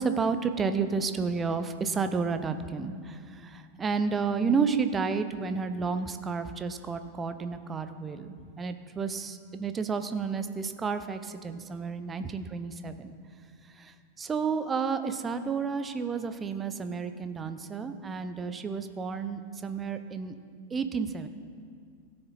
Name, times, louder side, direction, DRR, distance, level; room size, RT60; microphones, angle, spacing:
voice 1, 0.0-13.1 13.7-20.4 20.7-21.3, right 5 dB, 20° right, 9 dB, 0.6 m, -31 dB
17.0 x 6.8 x 4.1 m, 2.2 s
figure-of-eight pair, 90°, 0 cm